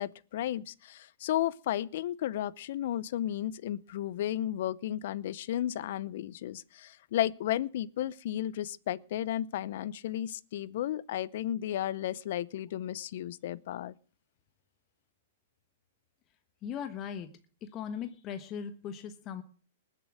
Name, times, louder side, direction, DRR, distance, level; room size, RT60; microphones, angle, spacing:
voice 1, 0.0-13.9, left 12 dB, 60° left, 0.7 m, -33 dB
voice 2, 16.6-17.3 17.6-19.4, left 8 dB, 30° left, 1.2 m, -38 dB
20.0 x 7.8 x 6.3 m
hypercardioid pair, 135°, 0 cm